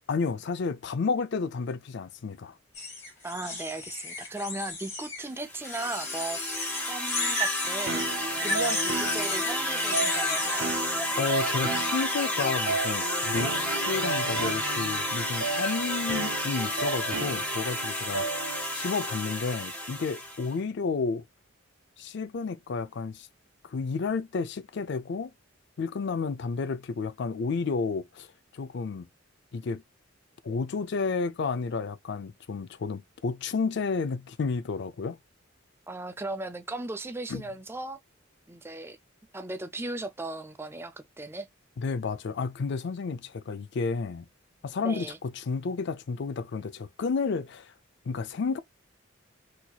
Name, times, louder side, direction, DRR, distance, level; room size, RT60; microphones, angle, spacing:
voice 1, 0.1-2.6 11.2-13.5 13.9-18.3 18.7-21.3 22.0-23.3 23.6-25.3 25.8-28.3 28.5-29.1 29.5-29.8 30.4-35.2 37.3-37.4 41.8-44.3 44.6-47.7 48.1-48.6, left 4 dB, 55° left, 0.4 m, -31 dB
sound 1, 2.7-5.3 5.6-10.7, left 2 dB, 35° left, 2.5 m, -33 dB
voice 2, 3.2-6.5 6.9-8.0 8.4-10.7 35.9-38.0 38.5-39.0 39.3-41.5 44.8-45.2, right 2 dB, 10° right, 0.4 m, -37 dB
sound 2, 5.4-20.5, left 1 dB, 5° left, 0.9 m, -31 dB
sound 3, 7.9-18.8, right 4 dB, 65° right, 0.6 m, -35 dB
4.3 x 2.8 x 2.2 m
head